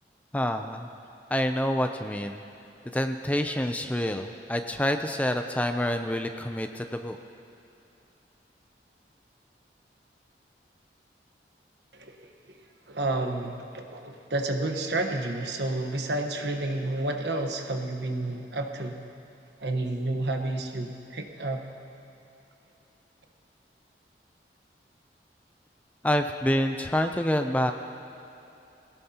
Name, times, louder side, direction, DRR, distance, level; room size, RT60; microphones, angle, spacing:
voice 1, 0.3-0.9 1.3-2.4 2.9-7.2 26.0-27.7, left 1 dB, 10° left, 6 dB, 0.5 m, -27 dB
voice 2, 12.9-19.0 19.6-21.7, right 2 dB, 75° right, 4 dB, 1.2 m, -30 dB
21.5 x 17.5 x 2.9 m, 2.8 s
head